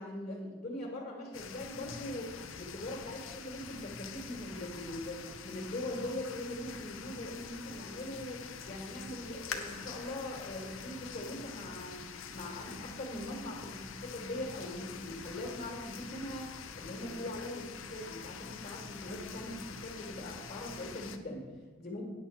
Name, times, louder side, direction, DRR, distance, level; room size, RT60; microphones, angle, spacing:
voice 1, 0.0-12.1 12.3-21.4 21.8-22.0, left 1 dB, 35° left, -2 dB, 1.7 m, -41 dB
sound 1, 1.3-21.2, left 6 dB, 70° left, 0.7 m, -46 dB
sound 2, 9.5-12.9 13.5-13.6 14.2-14.6 15.0-15.1, left 5 dB, 85° left, 1.0 m, -47 dB
10.0 x 4.3 x 7.2 m, 1.4 s
head